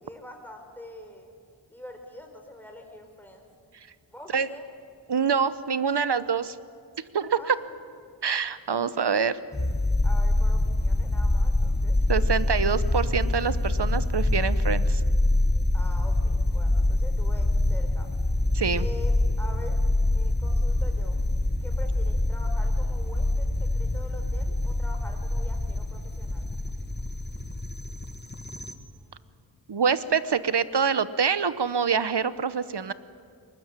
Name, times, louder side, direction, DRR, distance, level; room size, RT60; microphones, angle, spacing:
voice 1, 0.0-1.3 1.7-3.5 4.1-4.6 7.3-7.8 10.0-12.2 15.7-18.1 18.8-19.1 19.4-19.8 20.1-21.2 21.6-26.5 28.9-29.5, left 1 dB, 5° left, 3 dB, 4.4 m, -44 dB
voice 2, 5.1-6.6 7.1-7.6 8.2-9.4 12.1-15.0 18.5-18.9 29.7-32.9, right 6 dB, 55° right, 14 dB, 1.0 m, -25 dB
sound 1, 9.5-28.7, left 2 dB, 20° left, 1.7 m, -25 dB
23.0 x 20.5 x 9.8 m, 2.4 s
wide cardioid pair, 70°, 47 cm